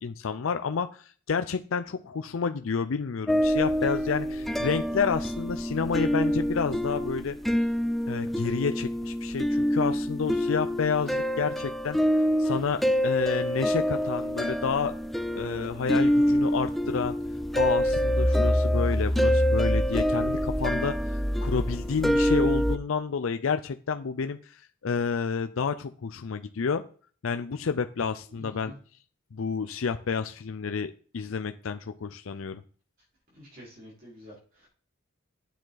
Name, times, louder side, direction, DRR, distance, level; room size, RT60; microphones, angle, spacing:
voice 1, 0.0-7.4 8.1-12.0 12.4-14.9 15.4-17.2 17.5-26.8 27.2-28.7 29.3-32.6, left 5 dB, 75° left, 9 dB, 0.5 m, -30 dB
sound 1, 3.3-22.8, equal, ahead, 0.4 m, -26 dB
voice 2, 28.3-28.8 33.3-34.7, equal, 45° right, -4 dB, 4.4 m, -48 dB
9.1 x 7.4 x 3.9 m, 0.42 s
head